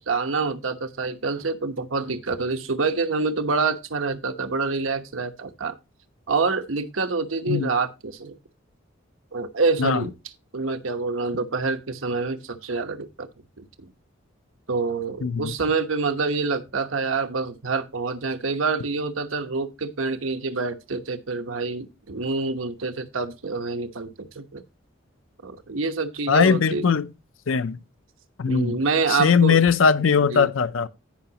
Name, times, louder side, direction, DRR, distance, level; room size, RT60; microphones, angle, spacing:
voice 1, 0.0-5.7 6.3-8.4 9.3-10.1 10.5-13.3 13.6-13.9 14.7-24.6 25.4-26.8 28.5-29.6 30.3-30.5, right 4 dB, 85° right, 1.1 m, -27 dB
voice 2, 15.2-15.5 26.3-27.1 27.5-27.8 28.4-28.8 29.1-30.9, left 6 dB, 70° left, 0.5 m, -20 dB
16.0 x 5.6 x 2.9 m
head